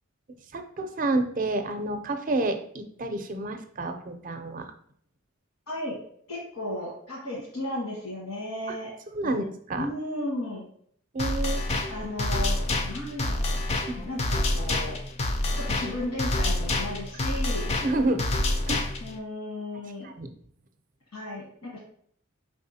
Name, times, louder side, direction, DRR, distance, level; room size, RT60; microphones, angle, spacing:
voice 1, 0.5-4.7 8.7-8.8 9.1-9.9 11.1-11.7 13.9-14.0 17.8-18.2 18.7-18.9 20.0-20.3, right 2 dB, 40° right, 7 dB, 0.5 m, -29 dB
voice 2, 6.3-8.9 9.2-9.4 9.7-10.6 11.9-13.6 14.0-15.0 15.5-17.9 19.0-20.1 21.1-21.8, left 1 dB, 85° left, -5 dB, 1.3 m, -35 dB
sound 1, 11.2-19.2, left 2 dB, 30° left, 0.3 m, -27 dB
4.8 x 3.5 x 2.7 m, 0.62 s
head